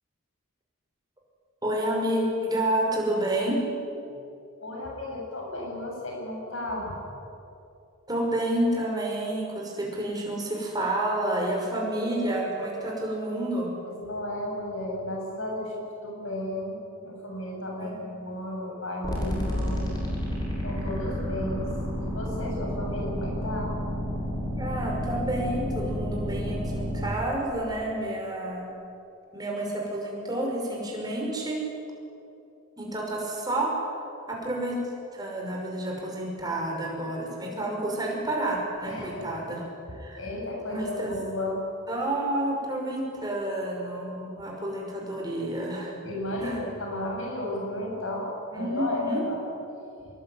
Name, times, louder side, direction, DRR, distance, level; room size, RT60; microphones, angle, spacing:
voice 1, 1.6-3.6 8.1-13.7 17.8-18.0 24.6-28.7 29.3-31.6 32.8-33.7 34.3-34.8 35.1-39.6 39.9-40.2 40.7-41.1 41.9-46.0 46.4-46.6 48.5-49.3, right 1 dB, 20° right, -1 dB, 5.8 m, -29 dB
voice 2, 4.6-7.0 13.8-16.8 17.0-19.8 20.6-23.7 38.9-39.3 40.2-41.6 46.0-49.4, left 1 dB, 75° left, -2 dB, 7.7 m, -33 dB
sound 1, 19.0-27.1, equal, 20° left, 6.6 m, -30 dB
26.0 x 22.5 x 9.6 m, 2.8 s
head